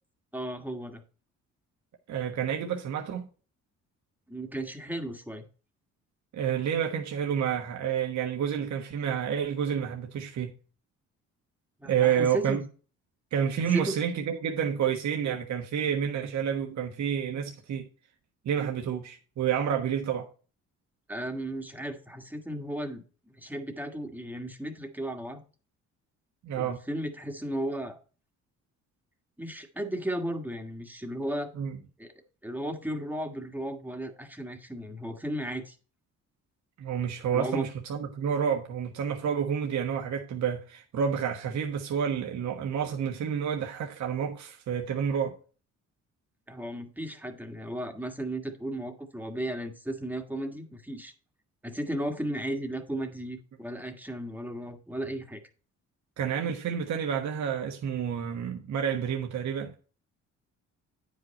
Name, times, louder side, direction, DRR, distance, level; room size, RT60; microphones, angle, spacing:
voice 1, 0.3-1.0 4.3-5.4 11.8-12.6 13.7-14.0 21.1-23.0 23.3-25.4 26.5-28.0 29.4-31.5 32.0-32.1 32.4-35.7 37.3-37.7 46.5-51.1 51.6-55.4, right 1 dB, 5° right, 1.5 m, -35 dB
voice 2, 2.1-3.3 6.3-10.5 11.8-12.6 13.3-17.8 18.4-20.3 26.4-26.8 31.6-31.7 36.8-45.3 56.2-59.8, right 8 dB, 65° right, 1.3 m, -29 dB
9.4 x 5.4 x 4.2 m
cardioid pair, 90°, 30 cm